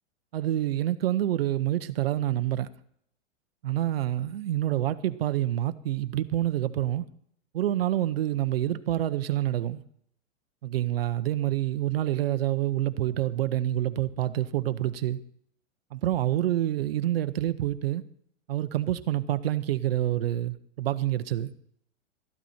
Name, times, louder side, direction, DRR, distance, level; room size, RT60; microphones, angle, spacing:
voice 1, 0.3-2.7 3.6-7.1 7.5-9.8 10.6-15.2 15.9-18.0 18.5-21.5, right 13 dB, 50° right, 0.8 m, -27 dB
13.5 x 12.5 x 4.3 m
supercardioid pair, 180°, 38 cm